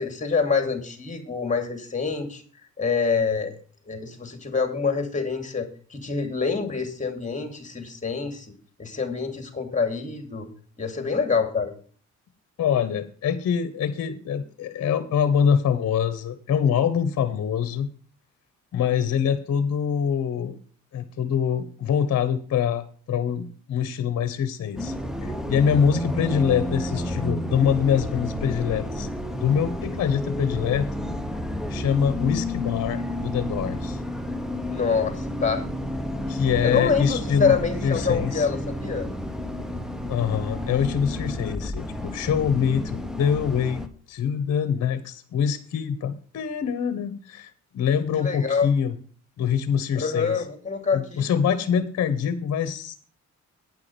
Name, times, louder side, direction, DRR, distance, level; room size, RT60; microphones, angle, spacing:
voice 1, 0.0-2.4 2.8-3.5 3.9-8.5 8.8-10.5 10.8-11.7 34.7-35.6 36.6-39.1 48.2-48.7 49.9-51.2, left 5 dB, 25° left, 6 dB, 2.7 m, -26 dB
voice 2, 12.6-17.9 18.7-20.5 20.9-24.9 25.2-29.1 29.4-30.9 31.7-34.0 36.3-37.5 37.8-38.5 40.1-49.0 49.4-50.4 50.9-52.9, left 7 dB, 55° left, 12 dB, 1.1 m, -24 dB
Bus, 24.8-43.9, left 1 dB, ahead, 1.0 m, -31 dB
9.6 x 5.9 x 6.9 m, 0.43 s
cardioid pair, 90°, 30 cm